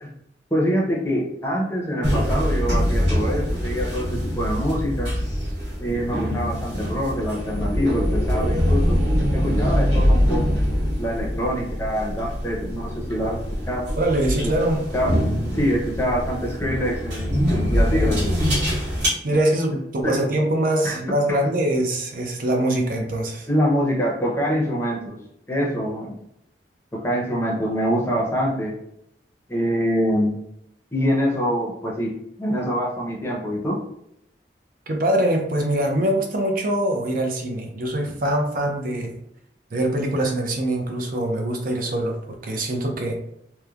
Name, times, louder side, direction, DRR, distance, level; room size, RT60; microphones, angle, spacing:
voice 1, 0.5-5.1 5.8-9.0 9.3-10.6 11.0-13.9 14.4-14.5 14.9-15.1 15.5-18.3 20.0-20.2 20.8-21.0 21.3-21.4 23.5-25.2 25.5-26.1 26.9-28.7 29.5-30.3 30.9-32.1 32.4-33.8, equal, 15° left, -2 dB, 0.6 m, -25 dB
sound 1, 2.0-19.1, equal, 80° right, 1.2 m, -23 dB
voice 2, 14.0-14.9 19.2-23.5 34.9-39.2 39.7-43.2, right 1 dB, 50° right, 2 dB, 0.5 m, -23 dB
3.0 x 2.1 x 2.3 m, 0.77 s
head